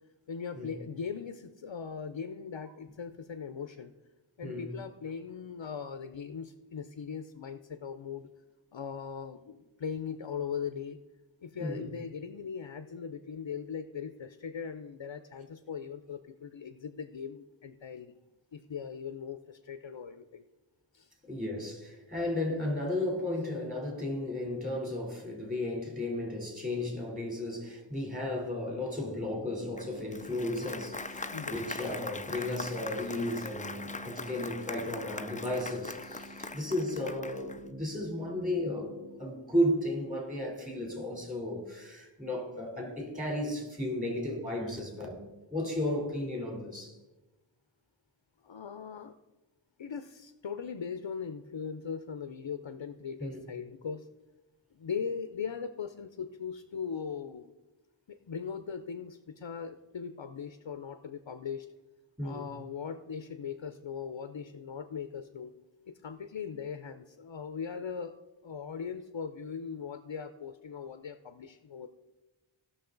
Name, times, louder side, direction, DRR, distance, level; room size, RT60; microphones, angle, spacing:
voice 1, 0.3-3.9 4.4-8.3 8.7-11.0 11.4-18.1 18.5-20.4 20.9-21.1 31.3-31.6 36.2-36.5 48.4-49.1 49.8-54.1 54.7-57.5 58.1-61.7 62.2-65.6 65.9-68.1 68.4-71.9, left 6 dB, 65° left, 9 dB, 0.7 m, -39 dB
voice 2, 4.4-4.7 11.6-11.9 21.2-38.9 39.2-45.2 45.5-47.0 53.2-53.4 62.2-62.4, left 1 dB, 15° right, 0 dB, 3.4 m, -34 dB
sound 1, 29.2-39.2, right 1 dB, 85° right, 4.0 m, -51 dB
Applause, 29.8-37.7, left 3 dB, 15° left, 0.4 m, -41 dB
16.0 x 6.4 x 3.9 m, 1.1 s
wide cardioid pair, 40°, 48 cm